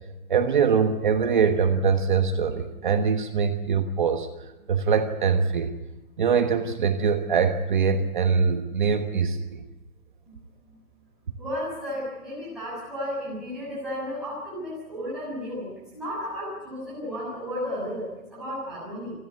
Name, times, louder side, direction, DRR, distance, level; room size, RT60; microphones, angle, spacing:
voice 1, 0.3-4.3 4.7-5.7 6.2-9.6, right 6 dB, 35° right, 6 dB, 1.3 m, -23 dB
voice 2, 11.4-15.7 15.9-19.1, equal, ahead, -9 dB, 6.7 m, -33 dB
28.0 x 11.0 x 9.7 m, 1.0 s
hypercardioid pair, 180°, 43 cm